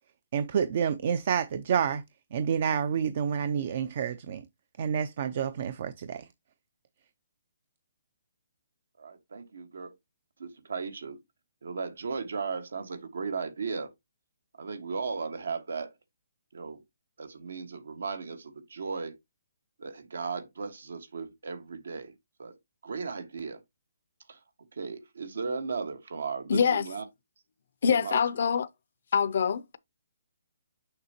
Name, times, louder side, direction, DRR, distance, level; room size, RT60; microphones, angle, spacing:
voice 1, 0.3-2.0 2.3-4.4 4.8-6.3, right 7 dB, 40° right, 0.4 m, -28 dB
voice 2, 9.0-9.9 10.4-11.2 11.6-13.9 14.6-15.9 16.5-16.8 17.2-19.2 19.8-22.6 22.8-23.6 24.3-24.4 24.7-27.0 27.8-28.2, right 5 dB, 80° right, 1.4 m, -36 dB
voice 3, 26.5-26.9 27.8-28.7 29.1-29.8, left 7 dB, 55° left, 0.5 m, -25 dB
6.6 x 5.5 x 2.9 m
hypercardioid pair, 170°, 0 cm